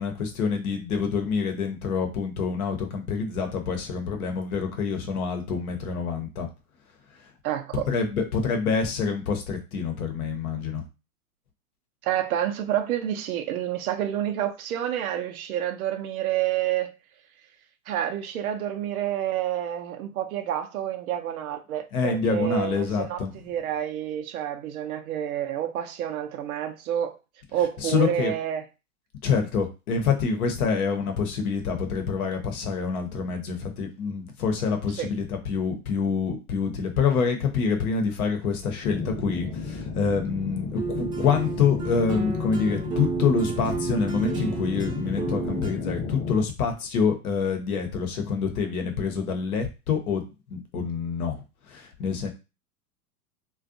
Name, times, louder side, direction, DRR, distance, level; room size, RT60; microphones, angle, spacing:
voice 1, 0.0-6.5 7.7-10.8 21.9-23.3 27.5-28.3 29.2-50.2 50.5-51.4 51.7-52.3, left 5 dB, 70° left, 0.8 m, -26 dB
voice 2, 7.4-7.9 12.0-16.9 17.9-27.2 27.5-28.6 34.9-35.1, right 11 dB, 70° right, 0.6 m, -29 dB
sound 1, 38.8-46.4, left 4 dB, 25° left, 0.7 m, -33 dB
sound 2, 40.8-45.7, right 5 dB, 10° right, 0.4 m, -32 dB
2.5 x 2.2 x 2.5 m
hypercardioid pair, 100°, 45 cm